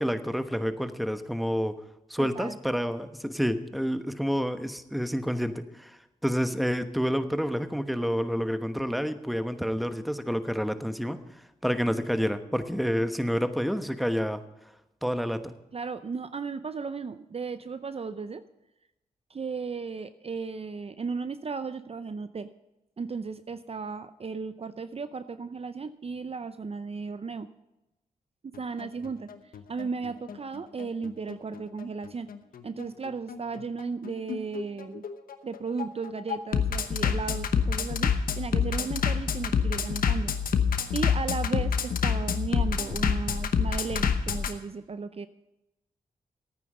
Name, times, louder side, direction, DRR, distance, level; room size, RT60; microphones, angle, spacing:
voice 1, 0.0-1.8 2.1-11.2 11.6-14.4 15.0-15.5, equal, ahead, 9 dB, 1.1 m, -29 dB
voice 2, 2.2-2.6 15.7-18.4 19.3-22.5 23.0-27.5 28.6-29.3 29.7-32.3 32.6-35.0 35.4-40.3 40.9-45.3, right 4 dB, 45° right, 12 dB, 0.6 m, -35 dB
Bass drum, 28.5-44.5, left 7 dB, 75° left, 0.9 m, -27 dB
14.0 x 9.2 x 5.5 m, 0.96 s
supercardioid pair, 45°, 15 cm